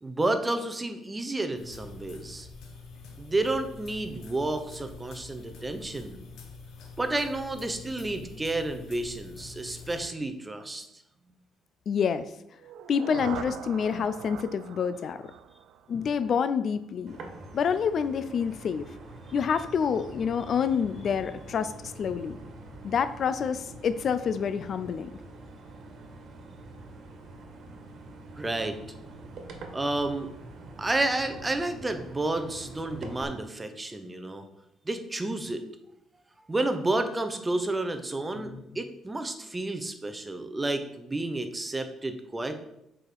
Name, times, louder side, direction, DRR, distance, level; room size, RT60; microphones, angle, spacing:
voice 1, 0.0-2.5 3.2-6.2 7.0-10.9 28.4-28.8 29.7-30.3 30.8-34.5 34.8-35.6 36.5-42.6, right 2 dB, 15° right, 7 dB, 0.7 m, -31 dB
sound 1, 1.5-10.0, left 4 dB, 75° left, 1.3 m, -46 dB
voice 2, 11.9-12.2 12.9-15.2 15.9-17.2 17.5-18.9 19.3-22.4 22.8-25.1 38.4-38.6, left 7 dB, 45° left, 13 dB, 0.4 m, -28 dB
sound 2, 12.6-16.5, right 9 dB, 75° right, 0.4 m, -42 dB
sound 3, 17.1-33.2, right 2 dB, 55° right, 1.6 m, -45 dB
7.2 x 4.9 x 4.6 m, 0.82 s
cardioid pair, 130°, 0 cm